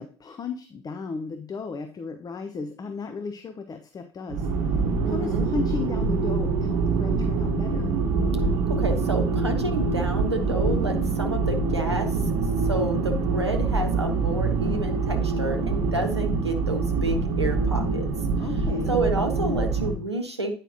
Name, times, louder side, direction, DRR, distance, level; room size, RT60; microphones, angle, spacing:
voice 1, 0.0-4.5 5.1-7.9 18.4-19.0, left 4 dB, 30° left, 7 dB, 0.7 m, -34 dB
sound 1, 4.3-20.0, right 4 dB, 55° right, 0.9 m, -25 dB
voice 2, 5.0-5.5 8.7-12.3 12.7-18.1 18.9-20.5, right 2 dB, 90° right, 5 dB, 0.7 m, -29 dB
9.0 x 4.9 x 2.9 m, 0.42 s
figure-of-eight pair, 60°, 14 cm